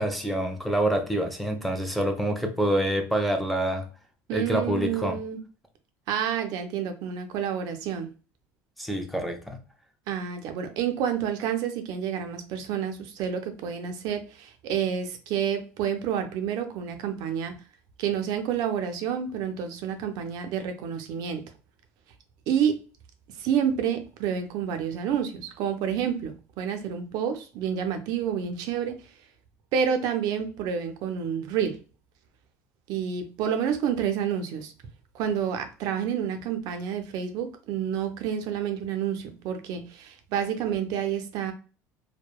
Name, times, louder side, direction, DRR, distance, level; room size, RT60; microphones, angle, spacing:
voice 1, 0.0-3.9 4.3-5.2 8.8-9.6, right 1 dB, ahead, 0.5 m, -26 dB
voice 2, 4.3-5.4 6.1-8.1 10.1-17.5 18.0-21.4 22.5-22.8 23.4-29.0 29.7-31.8 32.9-34.7 35.1-41.5, right 8 dB, 65° right, 0.5 m, -29 dB
2.8 x 2.1 x 2.3 m
supercardioid pair, 110°, 7 cm